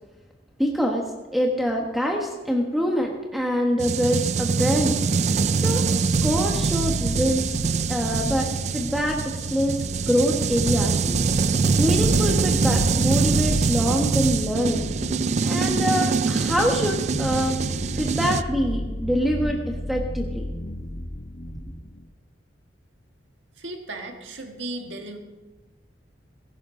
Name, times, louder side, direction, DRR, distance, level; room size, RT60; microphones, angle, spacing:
voice 1, 0.6-1.0 1.3-5.0 5.5-7.6 7.9-8.5 8.7-11.2 11.8-14.9 15.4-17.6 17.9-19.6 19.9-20.5, equal, ahead, 0 dB, 1.3 m, -25 dB
sound 1, 3.8-18.4, right 5 dB, 40° right, 0.4 m, -24 dB
sound 2, 6.1-22.0, left 1 dB, 50° left, 1.3 m, -33 dB
voice 2, 23.6-25.2, right 2 dB, 85° right, 4 dB, 1.6 m, -35 dB
15.5 x 15.5 x 3.8 m, 1.2 s
head